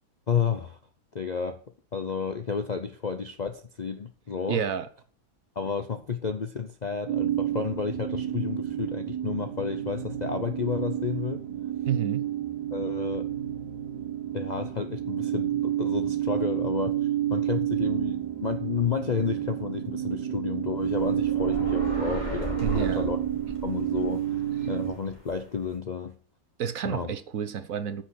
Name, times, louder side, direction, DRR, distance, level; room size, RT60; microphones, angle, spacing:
voice 1, 0.3-0.8 1.1-1.6 1.9-4.6 5.6-11.4 12.7-13.3 14.3-16.9 17.3-23.2 23.6-26.2 26.8-27.1, left 6 dB, 45° left, 0.5 m, -31 dB
voice 2, 4.5-4.9 11.8-12.3 22.6-23.1 26.6-28.0, right 8 dB, 60° right, 1.2 m, -30 dB
sound 1, 7.1-24.9, right 11 dB, 85° right, 1.7 m, -30 dB
sound 2, 20.8-25.7, left 1 dB, 25° left, 3.3 m, -36 dB
9.9 x 6.2 x 7.6 m
omnidirectional pair, 1.7 m